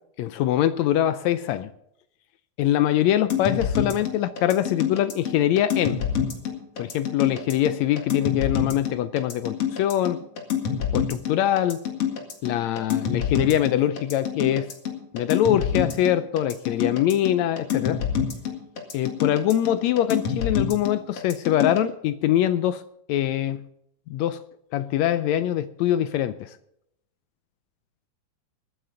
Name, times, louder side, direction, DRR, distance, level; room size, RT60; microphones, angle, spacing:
voice 1, 0.2-1.7 2.6-6.0 6.8-10.2 10.9-11.8 12.4-14.7 15.1-18.0 18.9-22.8 23.1-23.6 24.1-24.4 24.7-26.5, left 11 dB, 75° left, 1.7 m, -23 dB
sound 1, 3.3-21.8, left 8 dB, 55° left, 2.8 m, -27 dB
22.5 x 9.4 x 3.8 m
omnidirectional pair, 3.5 m